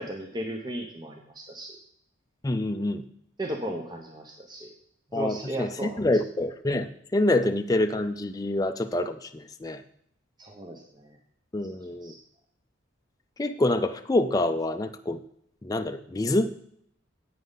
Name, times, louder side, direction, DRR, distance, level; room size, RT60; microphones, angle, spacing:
voice 1, 0.0-1.8 3.4-4.7 5.1-6.1 10.4-11.2 12.0-12.2, right 1 dB, 20° right, 2 dB, 0.8 m, -35 dB
voice 2, 2.4-3.0 5.1-9.8 11.5-12.1 13.4-15.2 15.6-16.5, left 2 dB, 20° left, 7 dB, 0.4 m, -26 dB
10.5 x 8.4 x 4.0 m, 0.68 s
head